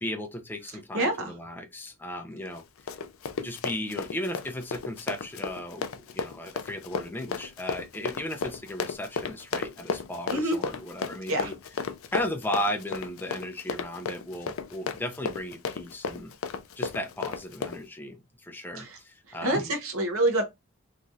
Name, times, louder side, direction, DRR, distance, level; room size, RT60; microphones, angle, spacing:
voice 1, 0.0-2.6 3.4-11.5 12.1-16.3 16.8-19.7, left 1 dB, 10° left, 0.5 m, -35 dB
voice 2, 0.9-1.3 10.3-10.6 11.3-11.5 18.8-19.0 19.4-20.4, right 1 dB, 75° right, 0.9 m, -26 dB
Run, 2.5-17.8, left 5 dB, 70° left, 0.4 m, -34 dB
3.0 x 2.4 x 2.6 m
head